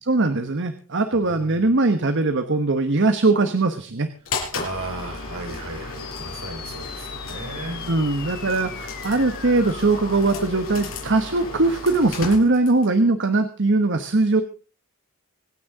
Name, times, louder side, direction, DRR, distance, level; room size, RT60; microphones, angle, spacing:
voice 1, 0.0-4.1 7.9-14.4, right 3 dB, 55° right, 8 dB, 1.2 m, -20 dB
voice 2, 1.1-1.7 4.5-7.8, right 2 dB, 75° right, 2 dB, 5.4 m, -35 dB
sound 1, 4.3-13.0, left 3 dB, 65° left, 6.0 m, -34 dB
sound 2, 6.0-11.0, left 7 dB, 45° left, 1.6 m, -40 dB
26.0 x 9.5 x 3.7 m, 0.37 s
head